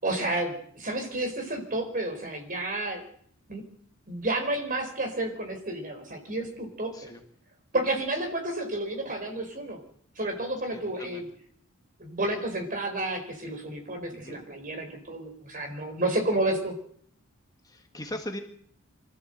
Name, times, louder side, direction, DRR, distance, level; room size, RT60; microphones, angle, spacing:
voice 1, 0.0-3.0 3.5-3.6 4.1-7.1 7.7-9.8 10.2-11.3 12.0-16.7, right 2 dB, 40° right, 5 dB, 4.7 m, -31 dB
voice 2, 10.7-11.2 14.1-14.4 17.6-18.4, left 1 dB, 15° left, 3 dB, 1.8 m, -39 dB
24.5 x 13.5 x 8.0 m, 0.62 s
head